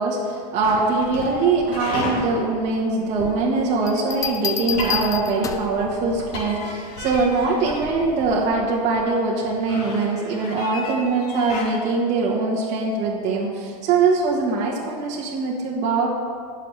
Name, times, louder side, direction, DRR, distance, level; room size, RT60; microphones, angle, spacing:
voice 1, 0.0-16.1, right 3 dB, 35° right, -4 dB, 1.6 m, -22 dB
sound 1, 0.6-11.6, left 2 dB, 75° left, 3.2 m, -34 dB
sound 2, 3.9-5.8 7.4-7.8, left 8 dB, 15° left, 0.5 m, -29 dB
19.5 x 6.7 x 3.4 m, 2.1 s
supercardioid pair, 140°, 21 cm